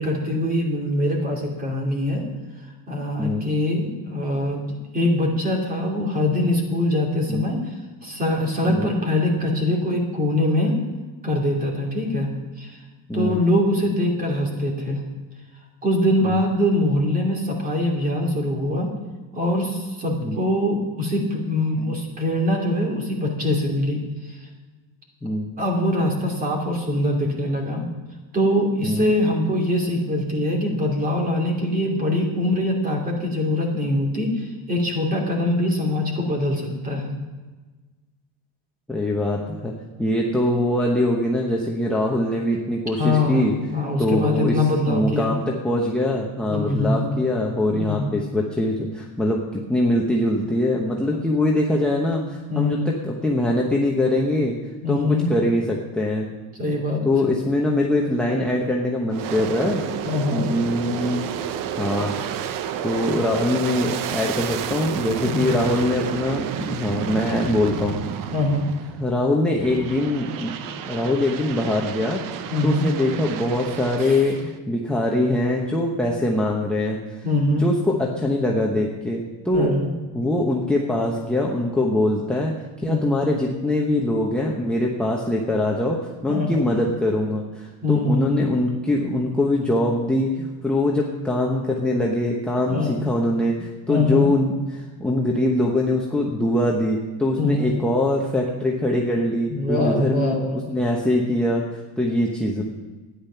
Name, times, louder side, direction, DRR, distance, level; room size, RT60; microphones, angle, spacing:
voice 1, 0.0-2.2 2.9-10.7 11.2-12.8 13.1-15.0 15.8-18.9 19.3-24.5 25.6-27.9 28.3-37.2 42.9-45.3 46.5-47.1 47.7-48.1 52.5-52.9 54.8-55.3 56.5-57.0 60.0-60.5 65.2-65.5 68.3-68.7 72.5-72.9 74.0-74.3 77.2-77.6 79.5-79.9 82.9-83.1 86.3-86.6 87.8-88.5 92.7-93.0 93.9-94.3 97.4-97.7 99.5-100.7, left 1 dB, 25° right, 0 dB, 2.8 m, -23 dB
voice 2, 13.1-13.4 16.2-16.4 20.2-20.4 25.2-25.5 28.8-29.0 38.9-39.7 40.0-43.5 44.0-44.6 44.9-54.5 54.9-56.3 57.0-59.9 60.3-61.3 61.8-62.1 62.8-68.0 69.0-70.5 70.9-72.2 72.6-77.2 77.6-79.7 80.1-102.6, left 1 dB, 5° left, -3 dB, 1.0 m, -23 dB
Aircraft, 59.1-69.1 69.6-74.6, right 9 dB, 60° right, 0.8 m, -31 dB
12.5 x 10.0 x 5.7 m, 1.3 s
cardioid pair, 160°, 37 cm